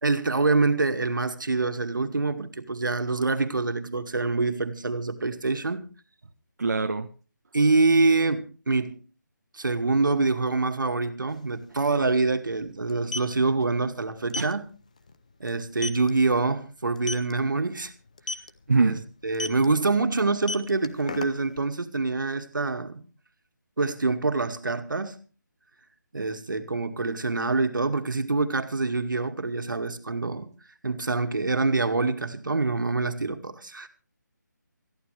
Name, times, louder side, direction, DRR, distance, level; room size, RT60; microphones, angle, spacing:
voice 1, 0.0-5.9 7.5-8.9 9.5-14.7 15.4-17.9 18.8-19.0 19.2-23.0 23.8-25.2 26.1-30.5 30.8-33.9, right 3 dB, 80° right, 2.1 m, -25 dB
voice 2, 6.6-7.1 14.4-14.5 18.7-19.0, right 4 dB, 55° right, 1.1 m, -23 dB
sound 1, 11.3-11.4 11.6-11.8 12.8-13.3 14.3-14.5 15.0-15.1 15.5-15.6 15.8-16.1 17.0-17.3 18.2-18.5 19.3-19.7 20.3-21.6, left 3 dB, 20° left, 0.6 m, -32 dB
21.0 x 14.0 x 3.3 m
figure-of-eight pair, 175°, 10 cm